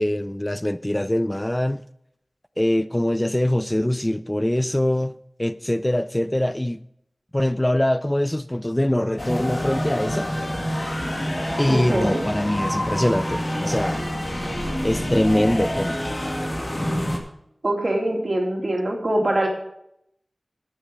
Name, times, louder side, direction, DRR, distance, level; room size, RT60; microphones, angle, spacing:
voice 1, 0.0-1.8 2.6-6.8 7.3-10.3 11.6-14.1 14.8-16.0, left 1 dB, 15° left, 0.4 m, -23 dB
sound 1, 9.2-17.2, equal, 35° left, 2.2 m, -27 dB
voice 2, 11.7-12.2 17.6-19.5, right 1 dB, 55° right, 2.7 m, -23 dB
11.5 x 7.3 x 5.3 m
wide cardioid pair, 50°, 0 cm